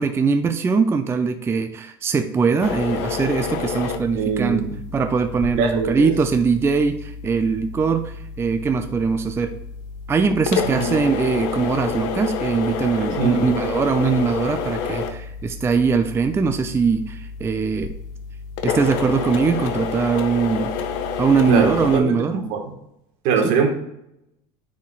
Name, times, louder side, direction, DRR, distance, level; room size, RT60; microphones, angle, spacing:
voice 1, 0.0-4.7 4.9-9.5 10.1-17.9 18.6-20.7 21.2-22.5 23.4-23.5, right 5 dB, 15° right, 8 dB, 0.4 m, -21 dB
sound 1, 2.6-22.0, left 6 dB, 70° left, 0.8 m, -29 dB
voice 2, 4.1-4.7 5.5-6.1 10.6-11.0 13.2-13.4 21.5-22.7 23.2-23.7, right 5 dB, 65° right, 3 dB, 1.5 m, -22 dB
9.5 x 4.2 x 2.4 m, 0.80 s
supercardioid pair, 105°, 14 cm